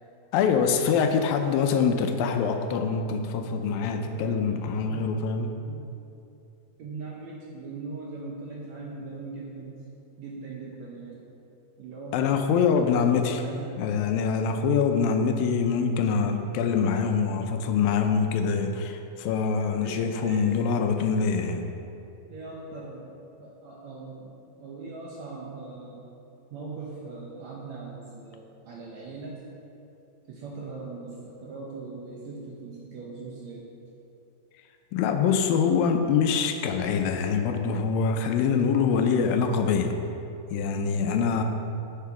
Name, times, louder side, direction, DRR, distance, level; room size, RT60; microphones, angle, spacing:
voice 1, 0.3-5.6 12.1-13.4 13.8-21.7 34.9-40.0 40.5-41.4, left 6 dB, 80° left, 6 dB, 2.3 m, -24 dB
voice 2, 4.1-5.2 5.7-5.9 6.8-9.8 10.2-11.2 11.8-14.0 14.4-14.7 19.8-20.6 21.3-21.5 22.3-26.1 26.5-29.4 30.3-33.7, right 3 dB, 70° right, -3 dB, 1.8 m, -40 dB
8.4 x 8.4 x 5.8 m, 2.7 s
omnidirectional pair, 4.2 m